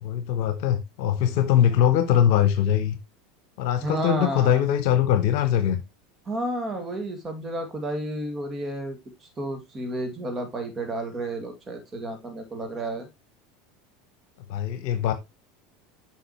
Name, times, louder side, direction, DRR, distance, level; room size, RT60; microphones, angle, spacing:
voice 1, 0.0-3.0 3.6-5.8 14.5-15.1, left 10 dB, 60° left, 0.9 m, -22 dB
voice 2, 3.8-4.6 6.3-9.0 9.4-13.1, right 1 dB, 25° right, 2.3 m, -31 dB
8.0 x 5.9 x 3.0 m
hypercardioid pair, 80°, 0 cm